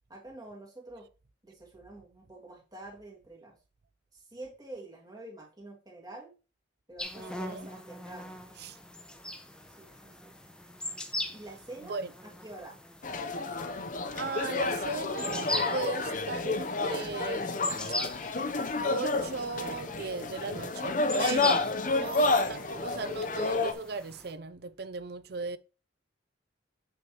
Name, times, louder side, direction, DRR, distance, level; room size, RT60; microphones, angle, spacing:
voice 1, 0.1-1.1 1.4-3.6 4.1-6.3 6.9-8.4 9.8-10.3 11.3-12.8, right 2 dB, 20° right, 2.2 m, -47 dB
sound 1, 7.0-24.3, left 1 dB, 5° left, 0.7 m, -41 dB
voice 2, 7.2-7.7 8.6-8.8 11.9-12.1 14.1-17.5 18.8-25.6, right 4 dB, 55° right, 0.5 m, -37 dB
sound 2, 13.0-23.7, left 3 dB, 40° left, 0.7 m, -30 dB
7.7 x 6.2 x 3.0 m
head